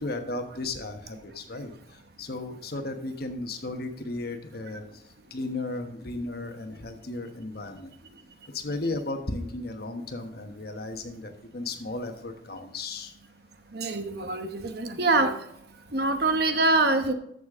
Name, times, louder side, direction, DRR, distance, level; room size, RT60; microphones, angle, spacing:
voice 1, 0.0-7.9 8.5-13.1, left 2 dB, 55° left, 6 dB, 1.2 m, -35 dB
voice 2, 13.7-15.3 15.9-17.1, right 2 dB, 60° right, 7 dB, 1.0 m, -24 dB
13.5 x 6.8 x 3.7 m, 0.74 s
head